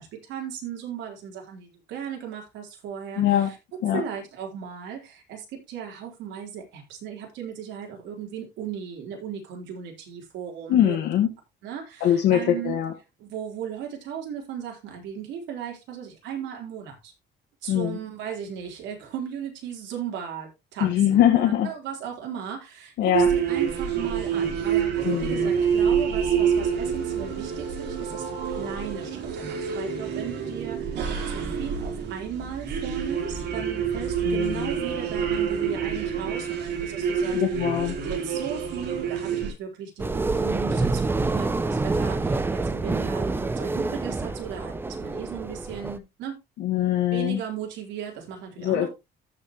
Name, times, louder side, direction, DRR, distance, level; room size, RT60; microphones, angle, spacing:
voice 1, 0.0-3.6 3.9-11.0 11.6-12.8 13.2-17.1 17.6-31.0 31.3-37.4 38.0-46.4 47.1-48.9, right 8 dB, 85° right, 1 dB, 4.0 m, -36 dB
voice 2, 3.2-3.5 3.8-4.0 10.7-11.3 12.0-12.9 17.7-18.0 20.8-21.7 23.0-23.3 25.0-25.5 34.2-34.7 37.2-37.9 46.6-47.4 48.6-48.9, left 11 dB, 75° left, 3 dB, 1.7 m, -22 dB
sound 1, 23.1-39.5, right 7 dB, 65° right, 4.0 m, -27 dB
sound 2, 40.0-46.0, right 3 dB, 10° right, 0.6 m, -27 dB
14.5 x 6.3 x 3.1 m, 0.24 s
cardioid pair, 170°, 19 cm